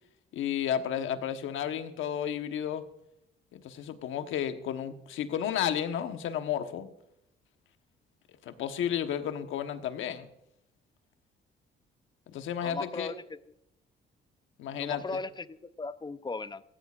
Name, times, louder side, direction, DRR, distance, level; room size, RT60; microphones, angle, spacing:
voice 1, 0.3-2.8 3.5-6.9 8.5-10.3 12.3-13.1 14.6-15.2, left 9 dB, 80° left, 8 dB, 1.2 m, -32 dB
voice 2, 12.6-13.4 14.7-16.6, left 3 dB, 20° left, 14 dB, 0.6 m, -37 dB
16.5 x 15.0 x 2.5 m, 0.82 s
cardioid pair, 90°, 20 cm